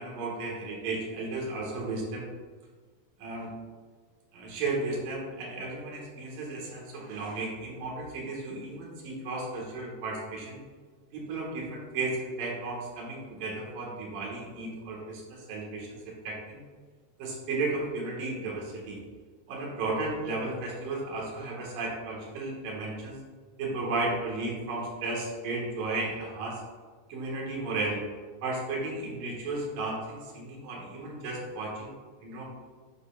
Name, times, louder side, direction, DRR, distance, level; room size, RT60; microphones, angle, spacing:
voice 1, 0.0-2.3 3.2-3.5 4.3-10.6 11.1-16.6 17.2-19.0 19.5-23.2 23.6-26.6 27.1-28.0 28.4-32.0 32.2-32.5, right 2 dB, 65° right, -3 dB, 3.0 m, -34 dB
11.0 x 5.5 x 2.4 m, 1.4 s
omnidirectional pair, 4.5 m